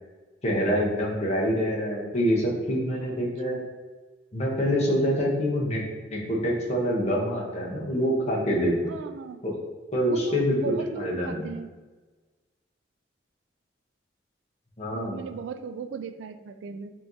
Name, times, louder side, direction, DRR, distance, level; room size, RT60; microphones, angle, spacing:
voice 1, 0.4-3.6 4.3-5.8 6.1-8.9 9.4-9.5 9.9-11.5 14.8-15.2, equal, 35° left, -3 dB, 0.9 m, -26 dB
voice 2, 8.9-9.4 10.1-11.7 14.9-16.9, right 5 dB, 85° right, 10 dB, 0.3 m, -36 dB
4.4 x 3.6 x 2.7 m, 1.3 s
head